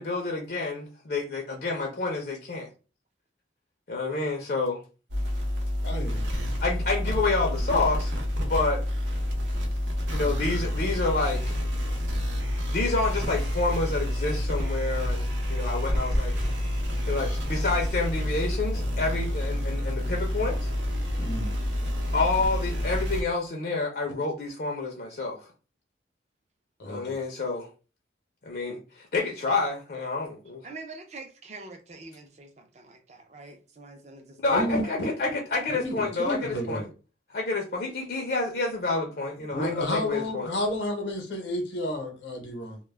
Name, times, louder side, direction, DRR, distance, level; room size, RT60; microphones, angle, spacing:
voice 1, 0.0-2.7 3.9-4.8 6.6-8.1 8.4-8.8 10.1-11.6 12.7-16.3 17.1-20.7 22.1-25.5 26.8-27.7 28.4-30.6 34.4-36.8 37.3-40.5, left 3 dB, 55° left, 0.4 m, -29 dB
sound 1, 5.1-23.2, left 1 dB, 85° right, 0.7 m, -28 dB
voice 2, 5.8-6.2 21.2-21.5 26.8-27.1 34.5-34.8 35.7-36.9 39.5-42.8, left 1 dB, 80° left, 0.8 m, -31 dB
voice 3, 30.6-34.4 34.7-35.1, right 2 dB, 40° right, 0.5 m, -44 dB
2.2 x 2.1 x 3.2 m
head